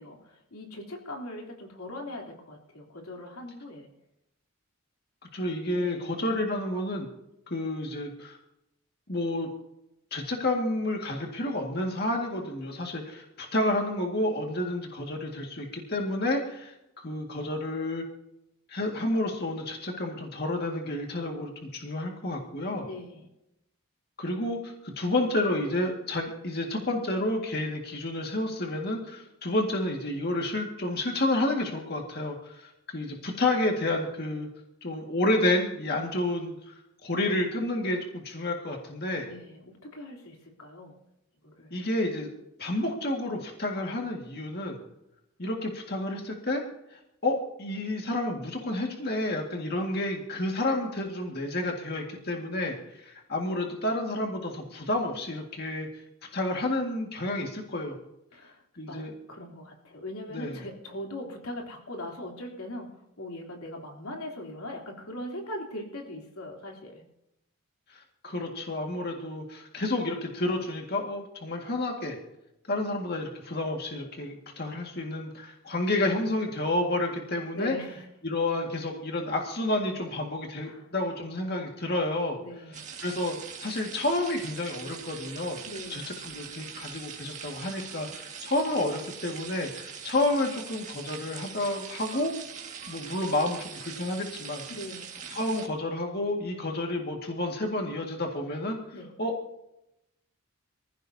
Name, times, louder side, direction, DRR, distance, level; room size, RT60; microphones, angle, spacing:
voice 1, 0.0-3.9 5.7-6.2 22.8-23.3 39.2-41.0 41.4-41.7 58.3-67.0 77.5-78.0 80.6-80.9 82.4-82.8 85.6-86.1 94.7-95.1 98.9-99.1, left 1 dB, 85° left, 1 dB, 3.4 m, -40 dB
voice 2, 5.3-7.1 7.5-8.4 9.1-9.5 10.1-18.0 18.7-22.9 24.2-34.5 34.8-39.3 41.7-42.3 42.6-44.8 45.4-46.6 46.9-56.0 56.3-58.0 58.8-59.1 60.3-60.6 67.9-72.2 72.7-77.7 78.2-82.4 83.0-85.6 85.9-92.3 92.9-94.6 95.3-98.8 99.2-99.3, left 1 dB, 45° left, 1 dB, 2.0 m, -30 dB
sound 1, 82.7-95.7, right 7 dB, 35° right, 1.9 m, -42 dB
25.0 x 15.5 x 2.8 m, 0.85 s
head